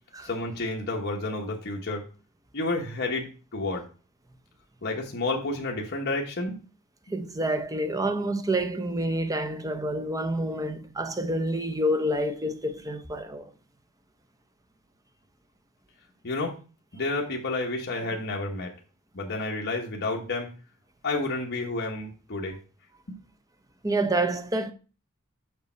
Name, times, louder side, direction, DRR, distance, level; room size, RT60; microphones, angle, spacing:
voice 1, 0.2-2.0 2.5-3.8 4.8-6.6 16.2-16.6 16.9-18.7 19.1-20.5 21.0-22.6 23.1-23.2, left 2 dB, 50° left, 1.1 m, -30 dB
voice 2, 7.1-13.5 23.8-24.7, right 1 dB, 15° right, 0.6 m, -28 dB
6.6 x 5.9 x 4.4 m
head